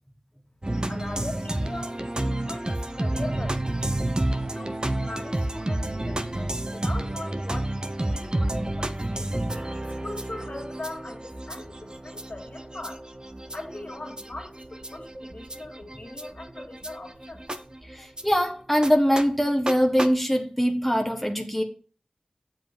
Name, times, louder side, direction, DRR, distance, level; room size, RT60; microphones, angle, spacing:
sound 1, 0.6-18.2 18.8-18.9 19.2-19.3 19.7-19.8 20.0-20.1, right 1 dB, 35° right, 0.9 m, -30 dB
voice 1, 0.9-3.7 4.4-9.3 10.0-13.0 13.5-17.5, left 2 dB, 65° left, 2.6 m, -40 dB
voice 2, 17.9-21.6, equal, 5° left, 1.4 m, -23 dB
7.7 x 7.6 x 4.0 m
wide cardioid pair, 45°, 2 cm